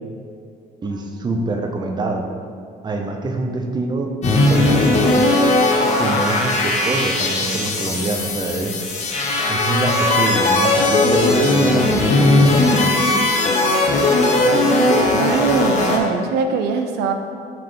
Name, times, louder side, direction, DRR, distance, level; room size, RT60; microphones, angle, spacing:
voice 1, 0.8-2.3 2.8-5.3 6.0-8.9 9.5-13.0 14.9-15.0, right 2 dB, 25° right, 3 dB, 0.7 m, -25 dB
sound 1, 4.2-16.0, left 2 dB, 45° left, 1.0 m, -18 dB
voice 2, 14.5-17.1, right 4 dB, 80° right, 5 dB, 0.5 m, -22 dB
5.8 x 3.7 x 5.0 m, 2.2 s
cardioid pair, 110°, 17 cm